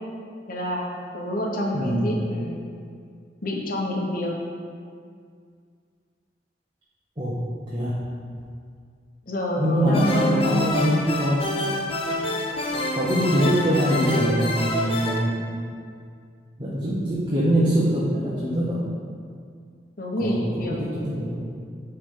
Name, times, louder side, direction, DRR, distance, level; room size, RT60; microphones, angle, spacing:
voice 1, 0.5-2.6 3.4-4.3 9.3-10.9 20.0-21.3, left 1 dB, 55° left, -1 dB, 1.1 m, -28 dB
voice 2, 1.7-2.1 7.2-7.4 7.7-8.0 9.6-11.4 12.9-15.6 16.6-18.8 20.2-21.5, equal, 25° right, -7 dB, 1.0 m, -23 dB
sound 1, 9.9-15.2, left 1 dB, 30° left, 0.7 m, -27 dB
9.0 x 3.4 x 5.5 m, 2.2 s
head